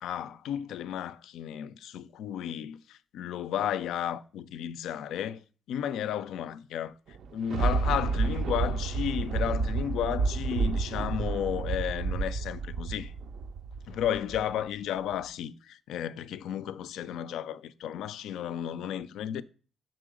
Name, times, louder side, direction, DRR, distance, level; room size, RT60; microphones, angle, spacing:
voice 1, 0.0-13.1 13.9-19.4, left 10 dB, 80° left, 0.3 m, -33 dB
Thunder, 7.1-14.6 15.1-15.2, right 4 dB, 70° right, 0.4 m, -30 dB
5.9 x 3.8 x 4.9 m
cardioid pair, 90°, 0 cm